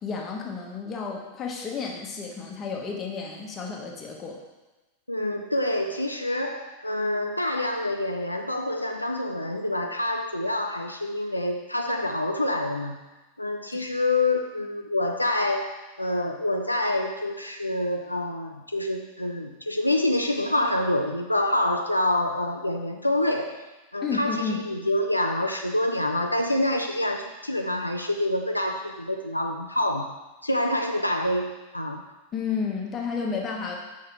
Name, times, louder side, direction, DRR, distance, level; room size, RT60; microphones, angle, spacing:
voice 1, 0.0-4.4 24.0-24.6 32.3-33.8, left 5 dB, 25° left, 0 dB, 1.2 m, -31 dB
voice 2, 5.1-13.0 13.4-23.6 23.9-30.1 30.4-32.0, left 1 dB, 85° left, 4 dB, 0.4 m, -27 dB
6.2 x 4.7 x 4.7 m, 1.1 s
figure-of-eight pair, 90°, 0 cm